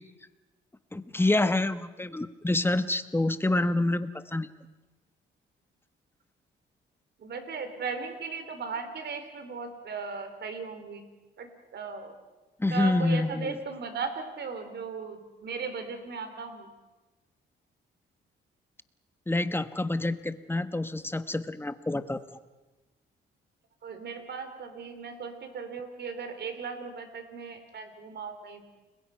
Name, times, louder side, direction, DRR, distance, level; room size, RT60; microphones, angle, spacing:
voice 1, 0.9-4.5 12.6-13.6 19.3-22.2, left 2 dB, 10° left, 11 dB, 1.3 m, -27 dB
voice 2, 7.2-11.1 11.4-12.2 12.7-16.7 23.8-28.6, right 5 dB, 60° right, 8 dB, 4.0 m, -37 dB
30.0 x 21.5 x 5.9 m, 1.2 s
cardioid pair, 90°, 20 cm